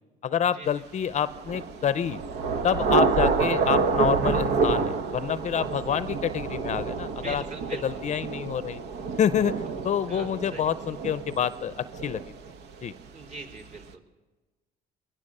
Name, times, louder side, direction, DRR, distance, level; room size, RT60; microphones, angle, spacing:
voice 1, 0.2-2.2 2.6-7.4 7.8-8.8 9.2-12.2 12.8-12.9, left 8 dB, 45° left, 14 dB, 0.6 m, -27 dB
Thunder / Rain, 1.3-12.9, right 4 dB, 80° right, 1.2 m, -28 dB
voice 2, 7.1-8.2 10.1-10.8 13.1-14.0, right 3 dB, 45° right, 1 dB, 4.1 m, -42 dB
21.5 x 20.0 x 6.6 m, 1.2 s
cardioid pair, 110°, 17 cm